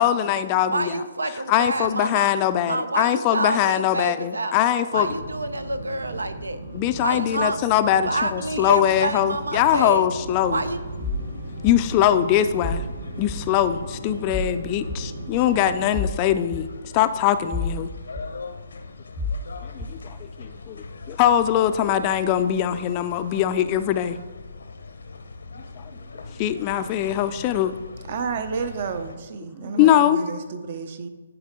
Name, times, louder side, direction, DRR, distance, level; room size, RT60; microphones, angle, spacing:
voice 1, 0.0-0.9 1.5-5.1 6.7-10.6 11.6-12.8 13.2-16.7 16.9-17.9 19.7-24.2 25.8-25.9 26.4-27.7 29.6-30.2, left 11 dB, 30° left, 11 dB, 0.4 m, -22 dB
voice 2, 0.7-2.3 2.7-4.6 4.9-6.6 7.0-7.6 8.1-10.1 10.5-10.8, right 2 dB, 85° right, 12 dB, 0.6 m, -28 dB
sound 1, 4.9-16.0, right 2 dB, 65° right, 1.0 m, -37 dB
sound 2, 10.5-29.2, left 3 dB, 75° left, 0.7 m, -41 dB
sound 3, 11.0-11.3 11.7-11.8 12.6-12.9 13.3-13.4 14.3-14.5 14.9-15.0 15.9-16.2 16.5-16.6 17.5-17.8 18.2-18.3 19.2-19.4 19.8-19.9, left 2 dB, 5° right, 0.7 m, -28 dB
voice 3, 28.1-31.1, right 5 dB, 45° right, 9 dB, 0.7 m, -31 dB
10.5 x 4.7 x 3.7 m, 1.3 s
figure-of-eight pair, 135°, 0 cm